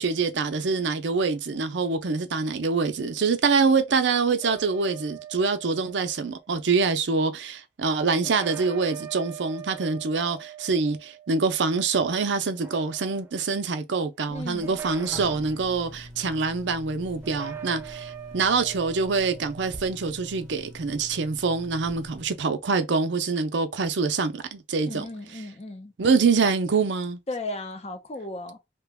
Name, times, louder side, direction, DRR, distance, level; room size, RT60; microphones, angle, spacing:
voice 1, 0.0-25.0 26.0-27.2, right 4 dB, 85° right, 0.6 m, -25 dB
sound 1, 4.4-6.5 8.2-12.0 12.5-13.5 14.6-15.7 17.2-19.9, right 9 dB, 15° right, 0.3 m, -42 dB
voice 2, 14.3-14.8 24.9-25.9 27.3-28.6, left 2 dB, 35° left, 0.6 m, -35 dB
sound 2, 14.3-22.3, equal, 5° left, 1.0 m, -45 dB
2.9 x 2.2 x 3.4 m
head